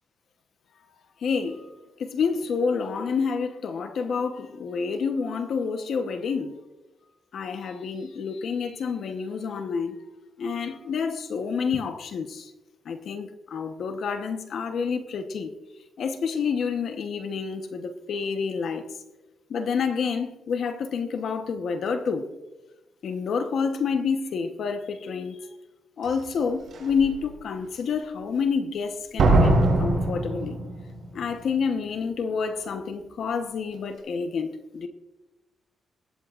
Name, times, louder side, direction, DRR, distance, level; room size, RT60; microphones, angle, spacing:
voice 1, 1.2-1.7 2.0-6.5 7.3-10.0 10.4-12.5 12.9-15.5 16.0-18.9 19.5-22.3 23.0-25.4 26.0-29.5 29.8-30.6 31.1-34.9, left 5 dB, 60° left, 1.0 m, -28 dB
Slam, 26.0-26.1 26.7-27.1 29.2-31.1 31.3-31.4, right 2 dB, 65° right, 4.5 m, -21 dB
20.0 x 15.5 x 2.5 m
wide cardioid pair, 180°, 0 cm